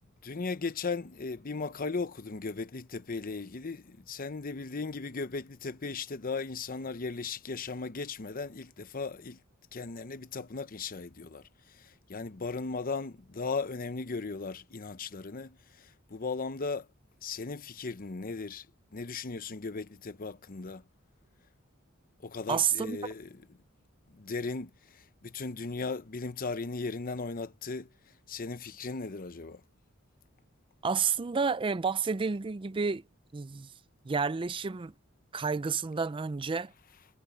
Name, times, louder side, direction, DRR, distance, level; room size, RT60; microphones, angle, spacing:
voice 1, 0.2-9.4 9.7-11.4 11.8-16.9 17.2-18.7 18.9-20.8 22.2-23.4 24.1-27.9 28.3-29.6, left 4 dB, 45° left, 0.8 m, -37 dB
voice 2, 22.5-23.0 30.8-33.0 33.3-33.7 34.1-34.9 35.3-36.7, right 5 dB, 25° right, 0.4 m, -30 dB
head